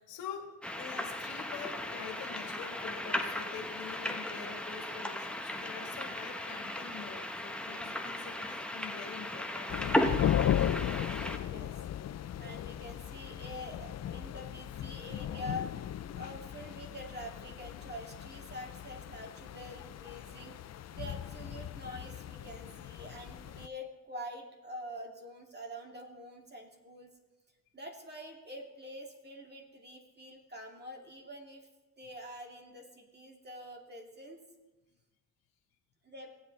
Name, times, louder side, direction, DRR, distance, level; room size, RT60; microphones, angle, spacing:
voice 1, 0.0-9.7, left 7 dB, 90° left, 2 dB, 1.6 m, -45 dB
sound 1, 0.6-11.4, left 1 dB, 5° left, 1.2 m, -36 dB
sound 2, 9.7-23.7, left 10 dB, 50° left, 0.5 m, -36 dB
voice 2, 11.4-11.7 12.4-15.7 16.2-20.6 20.9-27.1 27.7-31.7 32.0-34.4 36.0-36.3, left 1 dB, 30° right, 2 dB, 2.4 m, -46 dB
17.5 x 8.0 x 3.3 m, 1.1 s
supercardioid pair, 60°, 35 cm